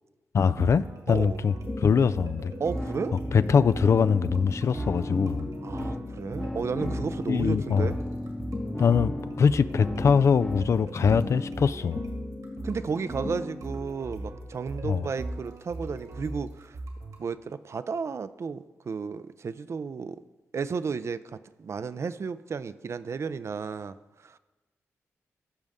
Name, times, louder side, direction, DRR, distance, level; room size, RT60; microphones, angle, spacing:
voice 1, 0.3-2.5 3.3-5.5 7.3-7.9 8.8-12.0 14.8-15.0, left 6 dB, 55° left, 14 dB, 0.3 m, -23 dB
sound 1, 0.6-17.3, right 2 dB, 70° right, 1.9 m, -39 dB
voice 2, 1.1-1.4 2.6-3.2 5.6-8.0 11.0-11.2 12.6-16.8 17.2-20.2 20.5-24.4, right 5 dB, 55° right, 13 dB, 0.5 m, -33 dB
sound 2, 1.5-13.8, left 3 dB, 40° left, 1.0 m, -39 dB
sound 3, 2.7-10.7, left 1 dB, 15° left, 0.9 m, -36 dB
14.5 x 5.3 x 3.6 m, 1.2 s
cardioid pair, 55°, 6 cm